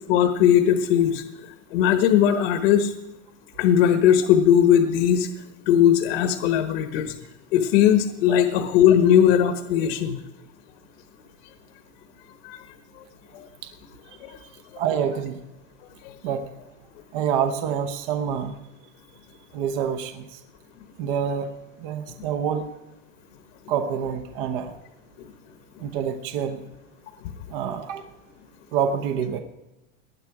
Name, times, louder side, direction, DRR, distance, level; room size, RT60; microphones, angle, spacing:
voice 1, 0.1-2.9 3.6-5.3 5.7-7.1 7.5-10.2 12.4-12.7 13.3-13.5 14.2-14.4 16.0-16.1 25.2-25.3, left 9 dB, 50° left, 7 dB, 1.2 m, -19 dB
voice 2, 14.1-14.5 14.8-15.4 16.2-16.4 17.1-18.6 19.5-20.4 21.0-21.5 21.8-22.7 23.7-24.7 25.8-26.6 27.5-28.1 28.7-29.4, right 8 dB, 40° right, 7 dB, 0.9 m, -27 dB
19.0 x 10.5 x 4.8 m, 1.0 s
supercardioid pair, 175°, 41 cm